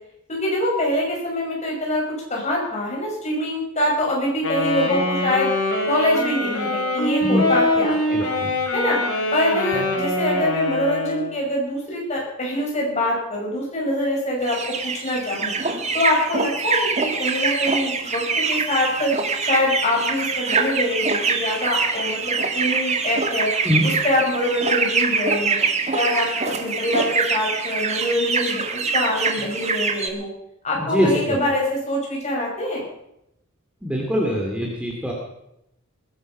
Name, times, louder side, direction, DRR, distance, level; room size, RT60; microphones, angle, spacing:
voice 1, 0.3-2.0 2.3-5.5 5.8-8.2 8.7-9.0 9.3-15.5 15.9-19.1 19.4-23.5 23.8-25.6 25.9-30.3 30.6-32.9, left 1 dB, 30° left, -2 dB, 6.0 m, -24 dB
Wind instrument woodwind instrument, 4.4-11.4, left 1 dB, 90° left, 4.3 m, -23 dB
voice 2, 8.1-8.5 9.7-9.8 23.6-23.8 30.9-31.4 33.8-35.1, left 1 dB, 5° right, -1 dB, 2.5 m, -23 dB
sound 1, 14.4-30.1, right 4 dB, 30° right, 1.6 m, -24 dB
20.5 x 11.5 x 5.5 m, 0.82 s
head